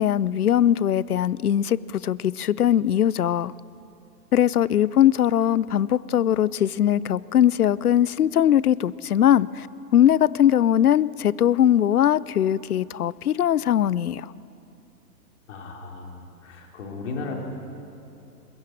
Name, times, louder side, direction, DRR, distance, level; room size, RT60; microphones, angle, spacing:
voice 1, 0.0-3.5 4.3-9.7 9.9-14.3, left 10 dB, 65° left, 0.6 m, -20 dB
voice 2, 15.5-17.4, left 4 dB, 45° left, 3.7 m, -35 dB
21.0 x 15.0 x 8.6 m
figure-of-eight pair, 125°, 49 cm